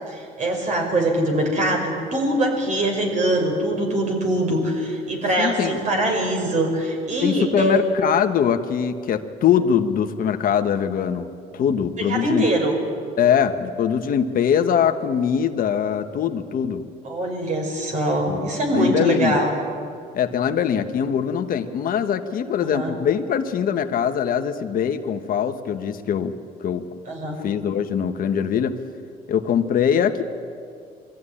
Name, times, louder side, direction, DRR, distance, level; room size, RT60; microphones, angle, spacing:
voice 1, 0.1-7.8 12.1-12.8 17.0-19.6 22.6-22.9 27.1-27.4, right 1 dB, 45° right, 2 dB, 5.7 m, -23 dB
voice 2, 5.4-5.8 7.2-11.3 11.5-12.4 13.2-16.8 18.3-18.5 18.7-19.4 20.1-26.3 26.6-26.9 27.4-28.7 29.3-30.2, left 8 dB, 55° left, 7 dB, 1.2 m, -22 dB
23.5 x 14.5 x 9.9 m, 2.4 s
cardioid pair, 110°, 17 cm